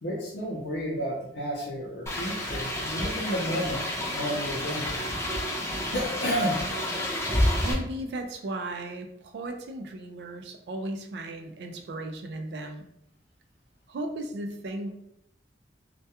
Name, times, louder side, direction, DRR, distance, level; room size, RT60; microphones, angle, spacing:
voice 1, 0.0-3.8 4.1-5.0 5.9-6.6, equal, 80° left, -6 dB, 0.5 m, -31 dB
sound 1, 2.1-7.7, left 1 dB, 15° left, 0.4 m, -29 dB
voice 2, 7.6-12.9 13.9-14.9, right 1 dB, 65° right, 5 dB, 0.3 m, -36 dB
2.2 x 2.2 x 2.8 m, 0.77 s
head